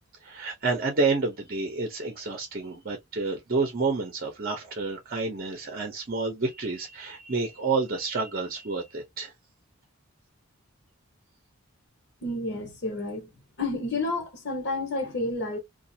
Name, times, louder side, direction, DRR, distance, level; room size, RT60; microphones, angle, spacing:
voice 1, 0.2-9.3, right 3 dB, 45° right, 0.8 m, -29 dB
voice 2, 12.2-13.3 13.6-15.6, left 2 dB, 55° left, 1.2 m, -30 dB
2.5 x 2.4 x 2.7 m
head